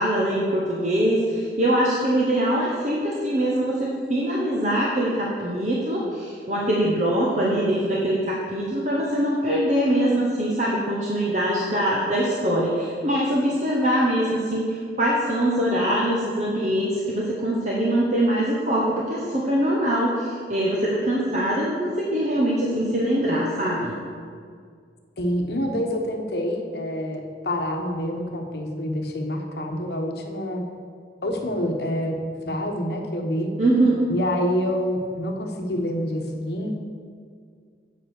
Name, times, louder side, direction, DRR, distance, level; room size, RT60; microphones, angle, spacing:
voice 1, 0.0-23.9 33.6-34.0, right 1 dB, 40° right, -4 dB, 1.0 m, -23 dB
voice 2, 25.2-30.6 31.2-32.2 32.4-33.5 34.1-36.7, equal, 65° left, 3 dB, 1.0 m, -27 dB
8.0 x 5.4 x 6.5 m, 2.1 s
head